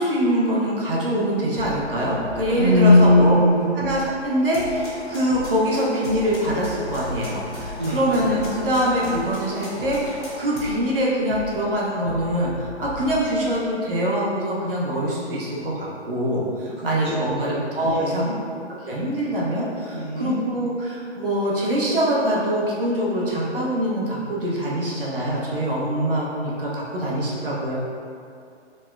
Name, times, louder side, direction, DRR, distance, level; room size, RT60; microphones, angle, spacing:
voice 1, 0.0-3.3 3.7-18.3 18.8-27.7, equal, 50° right, -5 dB, 0.7 m, -24 dB
sound 1, 1.5-13.5, left 1 dB, 40° left, 0.7 m, -39 dB
voice 2, 2.5-3.7 7.8-8.0 16.8-18.3 19.9-20.3, left 1 dB, 10° right, -17 dB, 0.5 m, -19 dB
sound 2, 4.5-10.6, equal, 85° left, 1.3 m, -38 dB
4.1 x 2.2 x 2.4 m, 2.4 s
hypercardioid pair, 150°, 35 cm